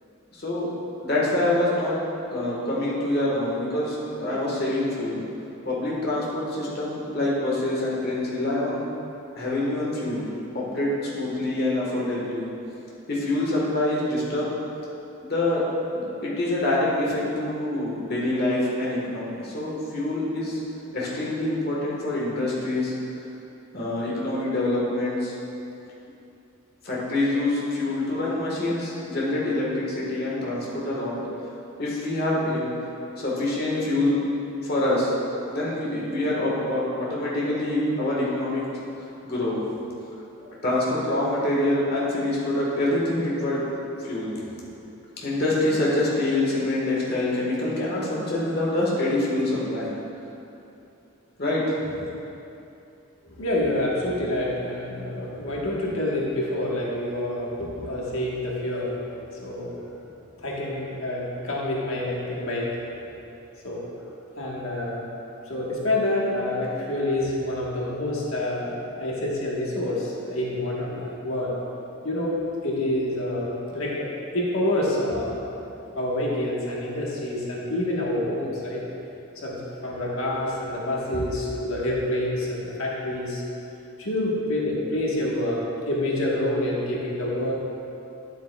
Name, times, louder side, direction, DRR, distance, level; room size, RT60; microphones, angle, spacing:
voice 1, 0.3-0.7 1.0-2.0 2.3-5.2 5.6-8.8 9.3-10.3 10.5-12.5 13.1-14.5 15.2-15.6 15.9-20.6 20.9-22.9 23.7-25.3 26.8-31.2 31.8-32.7 33.2-34.2 34.6-35.1 35.5-38.7 39.2-39.6 40.6-43.6 44.0-44.4 45.2-49.9 51.4-52.1, left 1 dB, 50° left, -6 dB, 1.4 m, -25 dB
voice 2, 53.4-59.8 60.4-62.8 63.6-63.9 64.4-65.0 65.5-71.6 72.0-74.1 74.3-75.4 75.9-78.8 79.4-83.4 84.0-87.5, left 1 dB, 80° left, -4 dB, 1.3 m, -27 dB
9.3 x 8.1 x 2.3 m, 2.8 s
head